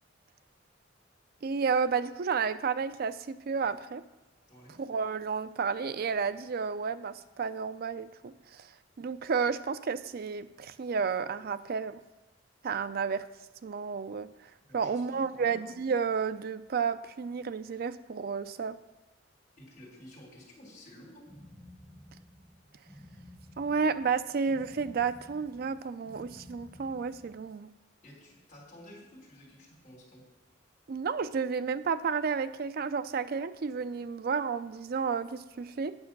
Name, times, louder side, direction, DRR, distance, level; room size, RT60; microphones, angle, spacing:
voice 1, 1.4-4.0 4.8-8.7 9.0-12.0 12.6-13.2 13.6-14.3 14.7-18.8 23.6-27.7 30.9-36.0, right 5 dB, 50° right, 13 dB, 0.4 m, -31 dB
voice 2, 14.7-15.7 19.6-21.3 28.0-30.2, left 1 dB, 40° left, -2 dB, 3.3 m, -52 dB
sound 1, 21.3-27.6, left 1 dB, 5° left, 0.6 m, -53 dB
8.7 x 6.1 x 6.0 m, 1.0 s
head